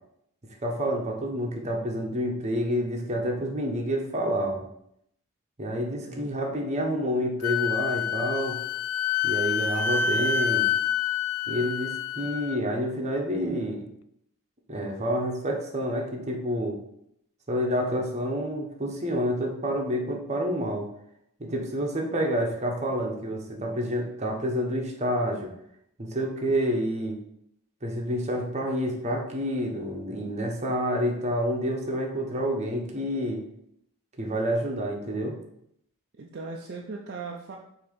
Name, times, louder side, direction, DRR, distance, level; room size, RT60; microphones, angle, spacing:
voice 1, 0.6-4.6 5.6-8.6 9.2-10.7 11.5-13.8 14.7-16.8 17.5-20.9 21.4-25.5 26.0-27.2 27.8-33.4 34.2-35.4, equal, 30° right, 1 dB, 1.0 m, -28 dB
Wind instrument woodwind instrument, 7.4-12.6, left 7 dB, 75° left, 0.3 m, -27 dB
voice 2, 36.2-37.6, right 4 dB, 50° right, -1 dB, 0.6 m, -38 dB
6.7 x 2.9 x 5.2 m, 0.74 s
head